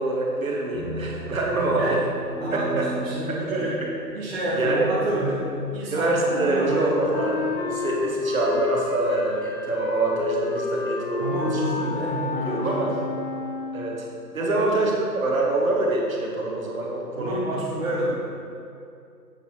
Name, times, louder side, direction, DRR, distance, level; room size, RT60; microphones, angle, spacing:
voice 1, 0.0-2.0 2.5-2.9 3.3-3.6 4.6-4.9 5.9-11.6 12.5-12.9 13.7-14.0 14.3-17.4 17.8-18.2, right 2 dB, 55° right, -2 dB, 1.4 m, -25 dB
sound 1, 0.7-9.5, right 1 dB, ahead, 1.4 m, -39 dB
voice 2, 1.6-2.0 2.4-3.7 4.1-6.1 6.4-6.9 11.2-13.1 14.4-15.0 17.2-18.2, right 1 dB, 40° right, -7 dB, 0.9 m, -29 dB
Wind instrument woodwind instrument, 6.2-13.9, left 5 dB, 40° left, 0.6 m, -30 dB
7.9 x 4.6 x 4.1 m, 2.5 s
figure-of-eight pair, 155°, 49 cm